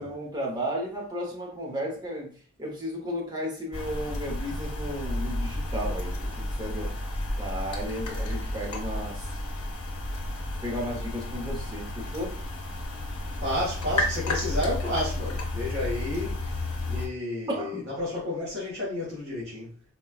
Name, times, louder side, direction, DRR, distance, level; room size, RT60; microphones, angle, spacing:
voice 1, 0.0-2.3 2.6-6.9 7.4-9.4 10.6-12.4 17.5-17.9, equal, 20° right, 0.9 m, -34 dB
sound 1, 3.7-17.1, left 1 dB, 80° left, 0.8 m, -32 dB
voice 2, 13.4-19.8, left 1 dB, 50° right, 1.3 m, -31 dB
4.3 x 2.3 x 2.3 m
head